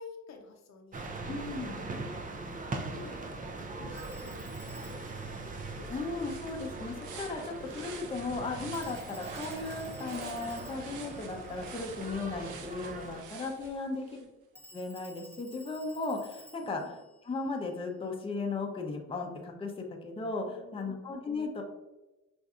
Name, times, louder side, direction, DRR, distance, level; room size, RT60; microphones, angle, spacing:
voice 1, 0.0-2.4 2.9-6.2 13.7-14.3 16.6-17.0 20.4-21.0, left 4 dB, 60° left, 3 dB, 0.7 m, -52 dB
sound 1, 0.9-13.2, right 3 dB, 25° right, 0.5 m, -41 dB
voice 2, 1.3-1.8 5.9-14.0 14.7-17.0 17.2-21.6, left 3 dB, 20° left, 1 dB, 0.6 m, -36 dB
Telephone, 3.9-6.6 8.7-12.4 14.6-18.0, left 1 dB, 10° right, 1.0 m, -56 dB
sound 2, 5.5-14.2, right 6 dB, 80° right, 0.6 m, -49 dB
5.6 x 2.6 x 2.4 m, 1.0 s
cardioid pair, 90°, 30 cm